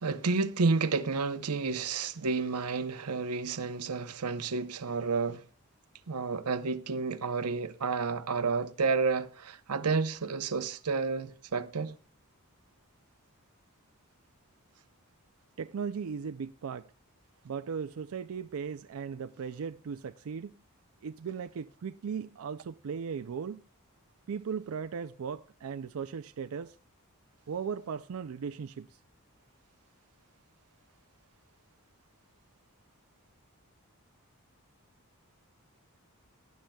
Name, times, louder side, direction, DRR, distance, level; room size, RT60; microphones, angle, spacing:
voice 1, 0.0-5.4 6.1-11.9, right 4 dB, 90° right, 0.8 m, -30 dB
voice 2, 15.6-16.9 17.4-20.6 21.0-23.6 24.3-26.8 27.5-29.0, right 6 dB, 65° right, 0.4 m, -37 dB
18.0 x 11.5 x 2.3 m
head